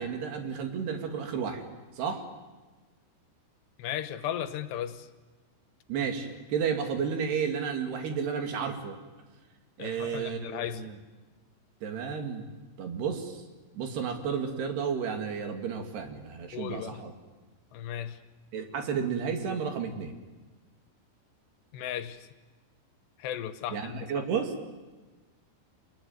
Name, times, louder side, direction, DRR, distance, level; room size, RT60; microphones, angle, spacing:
voice 1, 0.0-1.7 2.0-2.3 5.9-9.0 9.8-11.0 11.8-12.4 12.8-13.4 13.8-17.1 18.5-20.1 23.7-24.5, right 6 dB, 70° right, 5 dB, 4.4 m, -32 dB
voice 2, 3.8-5.1 9.8-10.9 16.5-17.0 17.7-18.2 21.7-22.3 23.2-24.1, left 10 dB, 80° left, 11 dB, 3.2 m, -36 dB
27.0 x 21.0 x 9.4 m, 1.3 s
omnidirectional pair, 5.0 m